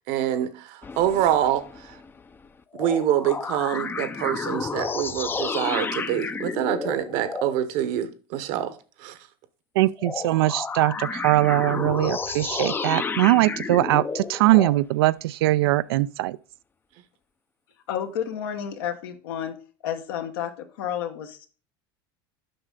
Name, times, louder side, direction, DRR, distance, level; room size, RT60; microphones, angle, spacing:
voice 1, 0.0-1.6 2.8-8.7 9.0-9.1, right 11 dB, 60° right, 0.9 m, -25 dB
sound 1, 0.8-2.5 2.7-7.6 10.0-14.8, left 5 dB, 15° left, 0.4 m, -31 dB
voice 2, 9.8-16.4, right 16 dB, 80° right, 0.4 m, -21 dB
voice 3, 17.9-19.5 19.8-21.5, left 9 dB, 80° left, 1.2 m, -31 dB
7.8 x 5.5 x 3.8 m
supercardioid pair, 110°, 12 cm